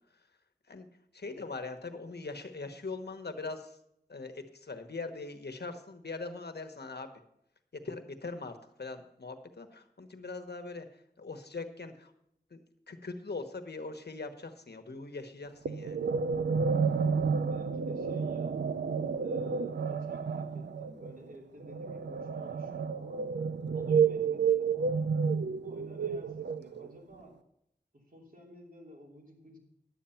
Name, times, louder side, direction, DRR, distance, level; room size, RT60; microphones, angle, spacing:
voice 1, 1.1-3.8 4.1-7.2 7.7-12.1 12.5-16.0, left 3 dB, 70° left, 7 dB, 1.2 m, -41 dB
sound 1, 15.6-27.0, right 5 dB, 85° right, 0.5 m, -30 dB
voice 2, 17.5-18.6 19.2-23.3 23.7-25.1 25.6-27.4 27.9-29.6, equal, 55° right, -1 dB, 3.1 m, -52 dB
11.0 x 8.9 x 5.7 m, 0.76 s
wide cardioid pair, 65°, 17 cm